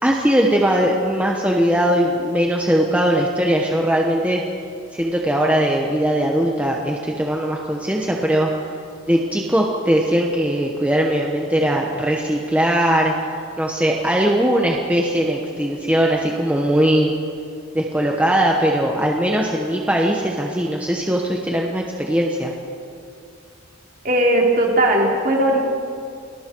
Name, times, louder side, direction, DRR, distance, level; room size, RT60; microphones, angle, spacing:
voice 1, 0.0-4.4 4.9-8.5 9.1-13.1 13.6-17.1 17.7-22.5, right 1 dB, 5° right, -1 dB, 1.2 m, -20 dB
voice 2, 24.0-25.6, right 1 dB, 45° right, -2 dB, 3.8 m, -17 dB
29.5 x 19.5 x 4.7 m, 2.5 s
head